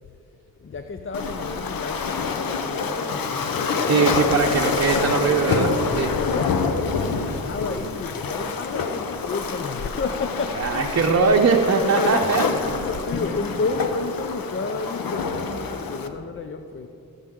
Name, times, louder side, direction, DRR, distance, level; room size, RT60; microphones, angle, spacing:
voice 1, 0.6-4.6 5.2-5.4 6.2-16.9, left 4 dB, 35° left, 7 dB, 0.6 m, -31 dB
Waves surf, 1.1-16.1, left 4 dB, 75° left, 1.0 m, -27 dB
voice 2, 3.9-6.2 10.6-12.4, right 4 dB, 50° right, 1 dB, 0.8 m, -20 dB
18.5 x 8.1 x 3.8 m, 2.8 s
cardioid pair, 70°, 35 cm